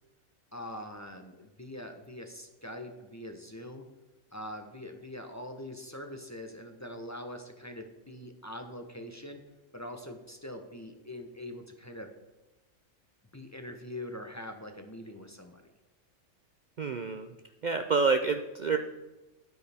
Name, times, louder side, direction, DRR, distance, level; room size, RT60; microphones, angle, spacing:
voice 1, 0.5-3.9 4.3-9.4 9.7-12.1 13.3-15.6, left 1 dB, 15° left, 4 dB, 0.6 m, -43 dB
voice 2, 16.8-17.3 17.6-18.8, right 4 dB, 85° right, 6 dB, 0.4 m, -28 dB
9.6 x 9.5 x 3.5 m, 1.0 s
omnidirectional pair, 1.5 m